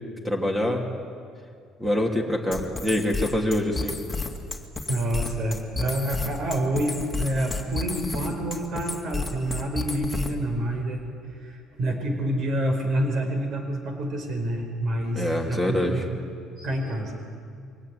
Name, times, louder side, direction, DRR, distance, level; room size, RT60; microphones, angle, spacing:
voice 1, 0.2-0.8 1.8-3.9 15.1-16.0, left 1 dB, 10° right, 2 dB, 2.9 m, -25 dB
sound 1, 2.5-10.5, left 3 dB, 10° left, 2.2 m, -31 dB
voice 2, 4.9-11.1 11.4-16.2 16.6-17.1, right 1 dB, 55° right, 4 dB, 4.8 m, -28 dB
23.5 x 17.5 x 9.5 m, 2.3 s
cardioid pair, 120°, 0 cm